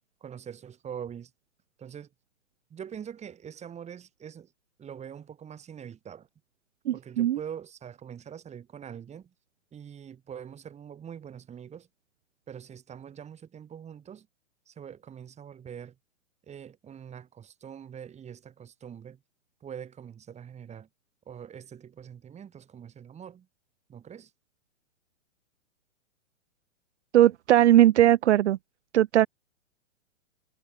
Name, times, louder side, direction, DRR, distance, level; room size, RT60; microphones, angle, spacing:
voice 1, 0.2-1.3 1.8-2.1 2.7-4.5 4.8-6.3 6.9-9.3 9.7-11.9 12.5-14.3 14.7-16.0 16.5-19.2 19.6-20.9 21.3-23.5 23.9-24.3, right 8 dB, 15° right, 3.6 m, -43 dB
voice 2, 6.9-7.4 27.1-28.6 28.9-29.3, right 12 dB, 60° right, 1.0 m, -19 dB
hypercardioid pair, 120°, 39 cm